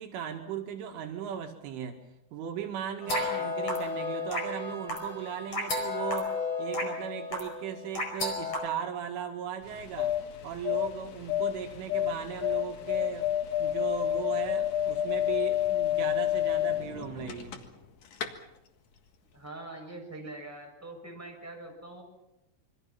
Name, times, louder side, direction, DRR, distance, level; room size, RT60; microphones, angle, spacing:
voice 1, 0.0-2.0 2.3-10.2 10.4-13.3 13.6-17.6, right 8 dB, 75° right, 3 dB, 4.3 m, -37 dB
sound 1, 3.0-8.6, left 2 dB, 30° left, 5.5 m, -33 dB
voice 2, 3.1-3.4 19.3-22.0, right 2 dB, 5° right, 0 dB, 6.2 m, -43 dB
sound 2, 9.6-17.9 18.1-18.3, left 11 dB, 60° left, 1.8 m, -29 dB
27.0 x 24.5 x 5.8 m, 0.95 s
omnidirectional pair, 5.7 m